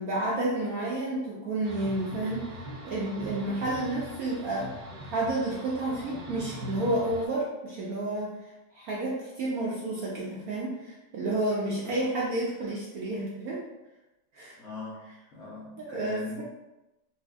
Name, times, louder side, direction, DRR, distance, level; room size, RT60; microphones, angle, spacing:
voice 1, 0.0-2.5 2.8-4.7 5.0-8.4 8.7-13.6 14.3-14.6 15.8-16.4, right 2 dB, 70° right, -5 dB, 0.8 m, -30 dB
sound 1, 1.6-7.3, equal, 90° right, 1.4 m, -42 dB
voice 2, 14.6-16.4, left 3 dB, 80° left, -6 dB, 0.6 m, -41 dB
4.2 x 2.6 x 2.4 m, 0.99 s
omnidirectional pair, 2.1 m